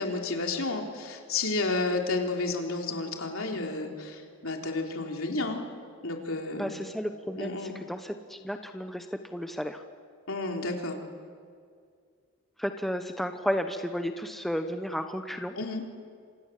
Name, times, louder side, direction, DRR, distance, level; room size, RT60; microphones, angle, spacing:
voice 1, 0.0-5.6 6.0-6.8 7.4-7.7 10.3-11.0 15.6-15.8, left 3 dB, 70° left, 2 dB, 3.6 m, -31 dB
voice 2, 6.5-9.1 9.3-9.8 12.6-15.5, equal, ahead, 6 dB, 1.0 m, -33 dB
29.0 x 26.0 x 7.6 m, 2.2 s
head